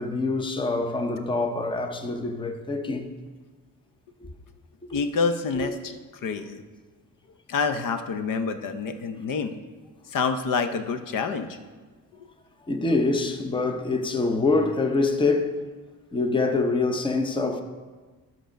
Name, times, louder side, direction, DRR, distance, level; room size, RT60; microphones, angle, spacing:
voice 1, 0.0-3.1 4.8-5.0 5.6-5.7 12.7-15.6 16.1-17.6, left 3 dB, 15° left, 0.6 m, -25 dB
voice 2, 4.9-6.6 7.5-9.6 10.1-11.6, left 5 dB, 65° left, 0.7 m, -27 dB
12.5 x 6.1 x 5.1 m
cardioid pair, 140°, 35 cm